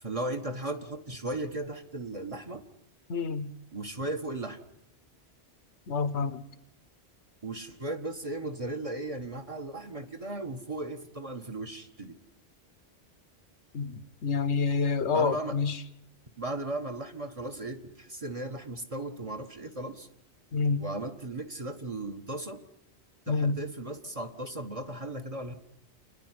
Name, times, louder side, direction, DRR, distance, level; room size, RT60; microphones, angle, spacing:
voice 1, 0.0-2.6 3.7-4.6 7.4-12.2 15.1-15.6 16.4-20.1 20.8-22.6 23.3-25.5, right 2 dB, 30° right, 1.5 m, -36 dB
voice 2, 3.1-3.5 5.9-6.4 13.7-15.8 20.5-20.8 23.3-23.6, left 4 dB, 90° left, 1.3 m, -28 dB
29.5 x 10.0 x 9.7 m
omnidirectional pair, 1.1 m